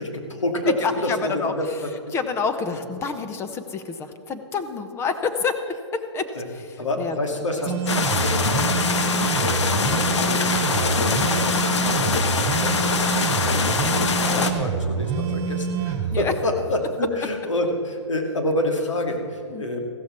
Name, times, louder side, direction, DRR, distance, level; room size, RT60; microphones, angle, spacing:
voice 1, 0.0-1.7 6.3-6.4 6.8-8.3 9.4-19.8, left 1 dB, 85° left, 3 dB, 2.3 m, -28 dB
voice 2, 0.8-1.8 2.1-8.5 8.8-9.1 16.1-16.3 19.5-19.7, left 5 dB, 15° left, 8 dB, 0.8 m, -29 dB
sound 1, 7.7-16.2, right 6 dB, 40° right, 1.6 m, -26 dB
sound 2, 7.9-14.5, left 5 dB, 70° left, 1.3 m, -23 dB
15.0 x 13.0 x 4.4 m, 2.5 s
hypercardioid pair, 130°, 15 cm